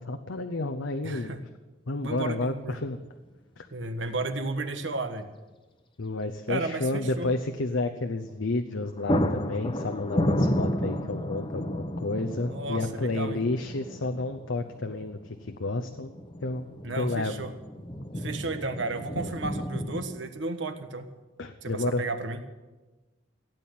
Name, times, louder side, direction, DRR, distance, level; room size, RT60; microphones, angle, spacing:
voice 1, 0.0-1.4 1.9-3.0 3.6-3.7 6.0-16.1 16.4-16.7 17.0-17.4 21.4-22.0, left 2 dB, 70° left, 5 dB, 0.8 m, -31 dB
voice 2, 1.0-1.4 2.0-2.8 3.7-5.3 6.5-7.3 12.5-13.5 16.8-17.5 18.1-21.1 21.6-22.4, right 2 dB, 65° right, 8 dB, 1.4 m, -33 dB
sound 1, 3.8-4.2 4.5-4.6 8.3-8.5 8.8-20.1, equal, 25° left, 1.0 m, -32 dB
16.5 x 9.1 x 9.3 m, 1.2 s
head